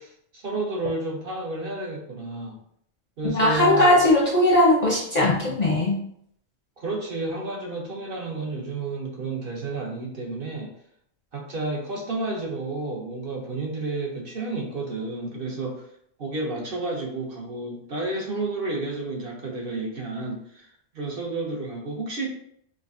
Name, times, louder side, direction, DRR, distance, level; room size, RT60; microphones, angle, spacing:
voice 1, 0.0-2.6 3.2-4.0 6.8-10.7 11.3-15.9 16.2-20.7 20.9-22.3, right 2 dB, 55° right, -1 dB, 0.8 m, -31 dB
voice 2, 3.2-6.0, left 1 dB, 45° left, -4 dB, 0.6 m, -19 dB
4.9 x 2.1 x 2.5 m, 0.69 s
omnidirectional pair, 1.2 m